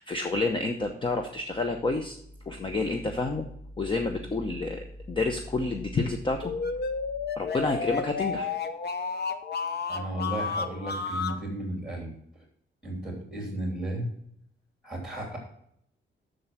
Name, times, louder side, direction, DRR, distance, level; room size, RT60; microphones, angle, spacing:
voice 1, 0.0-2.2 2.5-3.5 3.8-6.5 7.4-8.5, left 3 dB, 25° left, 5 dB, 0.7 m, -29 dB
sound 1, 6.4-11.4, left 5 dB, 55° left, 0.9 m, -32 dB
voice 2, 9.9-12.1 12.8-14.1 14.8-15.4, right 1 dB, 5° right, 0 dB, 3.1 m, -34 dB
7.6 x 6.6 x 5.9 m, 0.70 s
wide cardioid pair, 175°, 21 cm